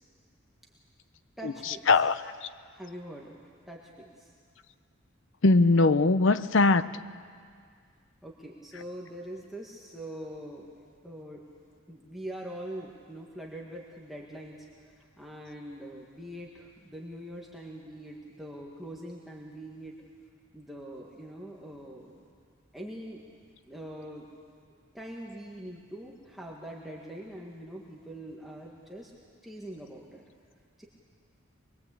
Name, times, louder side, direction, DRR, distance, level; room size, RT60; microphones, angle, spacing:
voice 1, 1.4-2.1 2.7-3.4 3.7-4.3 8.2-11.4 11.9-20.0 20.5-22.2 22.7-23.2 23.7-24.3 24.9-29.1 29.4-30.2 30.8-30.9, right 1 dB, ahead, -3 dB, 1.8 m, -43 dB
voice 2, 5.4-6.9, left 3 dB, 70° left, 13 dB, 0.7 m, -20 dB
24.0 x 21.5 x 8.4 m, 2.1 s
head